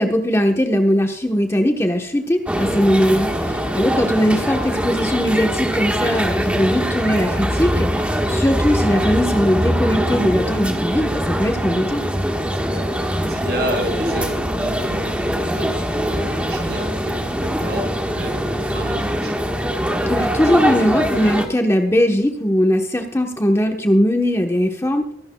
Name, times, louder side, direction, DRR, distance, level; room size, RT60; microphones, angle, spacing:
voice 1, 0.0-7.9 8.3-12.0 20.1-25.1, equal, 15° left, 3 dB, 1.1 m, -19 dB
sound 1, 2.5-21.5, equal, 5° right, 1.4 m, -22 dB
voice 2, 2.8-3.3 12.3-19.5, right 1 dB, 60° right, 2 dB, 4.7 m, -31 dB
23.0 x 12.0 x 2.3 m, 0.68 s
head